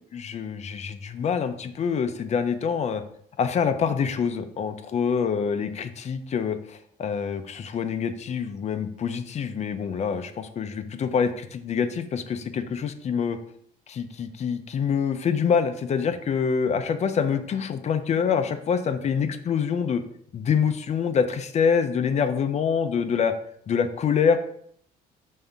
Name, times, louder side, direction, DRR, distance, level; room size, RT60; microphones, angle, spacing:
voice 1, 0.1-3.0 3.4-13.4 13.9-20.0 20.3-23.3 23.7-24.4, left 6 dB, 40° left, 9 dB, 0.7 m, -26 dB
5.5 x 3.5 x 5.5 m, 0.66 s
cardioid pair, 110°, 17 cm